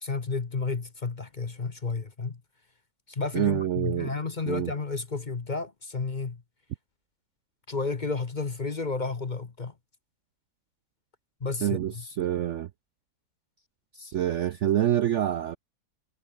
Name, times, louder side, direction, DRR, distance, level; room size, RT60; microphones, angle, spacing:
voice 1, 0.0-2.4 3.1-6.4 7.7-9.7 11.4-12.0, left 4 dB, 30° left, 1.2 m, -32 dB
voice 2, 3.3-4.1 4.5-4.7 11.6-12.7 13.9-15.6, right 11 dB, 65° right, 0.8 m, -27 dB
omnidirectional pair, 1.8 m